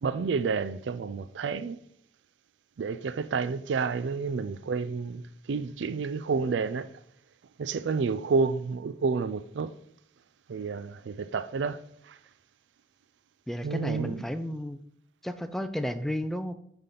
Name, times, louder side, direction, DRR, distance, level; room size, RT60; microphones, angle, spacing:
voice 1, 0.0-1.8 2.8-5.2 5.5-6.9 7.6-9.7 10.5-11.8 12.0-12.2 13.6-14.2, right 5 dB, 70° right, 0.4 m, -30 dB
voice 2, 13.5-14.8 15.2-16.5, equal, ahead, 0.4 m, -32 dB
9.6 x 3.6 x 3.8 m
head